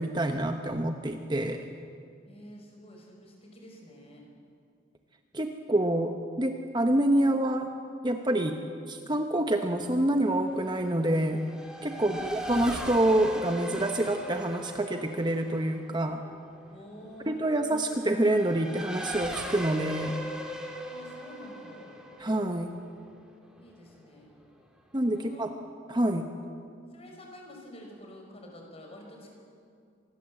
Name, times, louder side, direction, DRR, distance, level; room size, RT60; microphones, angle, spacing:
voice 1, 0.0-1.6 5.3-7.7 8.0-8.6 8.9-11.4 11.8-16.2 17.3-20.1 22.2-22.7 24.9-25.5 25.9-26.3, right 1 dB, 20° right, 5 dB, 1.0 m, -27 dB
voice 2, 2.3-4.2 11.9-12.3 16.7-17.7 20.8-22.0 23.6-24.3 25.2-25.4 26.9-29.3, left 1 dB, 30° left, 1 dB, 5.5 m, -48 dB
Race car auto racing / Accelerating revving vroom, 9.8-23.9, equal, 5° right, 2.3 m, -40 dB
26.0 x 20.0 x 7.7 m, 2.3 s
head